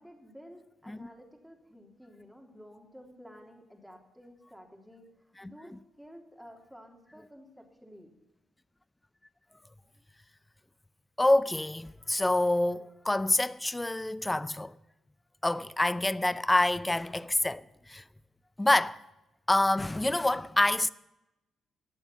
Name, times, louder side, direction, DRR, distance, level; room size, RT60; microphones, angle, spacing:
voice 1, 0.0-8.1, equal, 5° right, 3.2 m, -52 dB
voice 2, 11.2-14.7 15.4-18.0 18.6-19.0 19.5-20.9, left 1 dB, 15° left, 0.6 m, -27 dB
18.5 x 7.1 x 7.3 m
cardioid pair, 80°, 0 cm